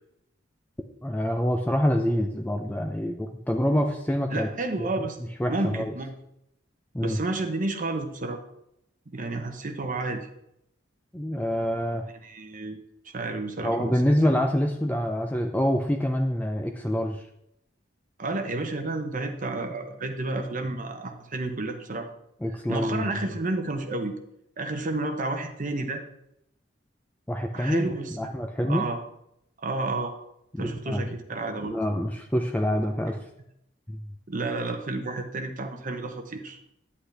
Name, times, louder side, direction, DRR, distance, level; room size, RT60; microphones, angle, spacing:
voice 1, 1.0-4.5 4.8-5.1 5.4-5.9 6.9-7.2 11.1-12.1 13.6-17.3 22.4-23.4 27.3-28.9 30.5-31.1 31.6-33.2 33.9-34.0, equal, 10° left, 3 dB, 0.5 m, -26 dB
voice 2, 4.3-5.2 5.5-6.1 7.0-8.4 9.1-10.3 12.2-12.8 13.1-13.9 18.2-22.1 22.7-24.1 24.6-26.0 27.5-28.1 28.6-29.0 29.6-30.1 30.6-31.8 34.3-36.6, right 2 dB, 45° right, 5 dB, 0.9 m, -31 dB
9.7 x 8.4 x 3.3 m, 0.79 s
head